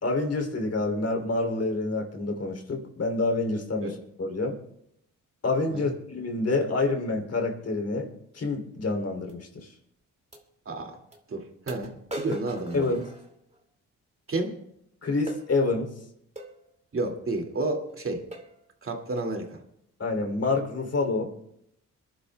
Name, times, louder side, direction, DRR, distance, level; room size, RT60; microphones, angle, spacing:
voice 1, 0.0-4.6 5.4-8.1 8.3-9.7 12.7-13.0 15.0-15.9 20.0-21.3, left 3 dB, 45° left, 3 dB, 3.0 m, -27 dB
sound 1, 9.3-9.4 10.3-10.4 11.1-11.2 11.7-13.6 15.3-15.5 16.4-16.6 17.3-17.5 17.9-18.0 18.3-18.6 19.2-19.4, equal, 20° right, 2.4 m, -40 dB
voice 2, 10.7-11.0 11.3-12.9 14.3-14.6 16.9-18.2 18.8-19.6, right 2 dB, 40° right, 3 dB, 2.3 m, -31 dB
27.5 x 11.5 x 2.2 m, 0.77 s
cardioid pair, 95°, 33 cm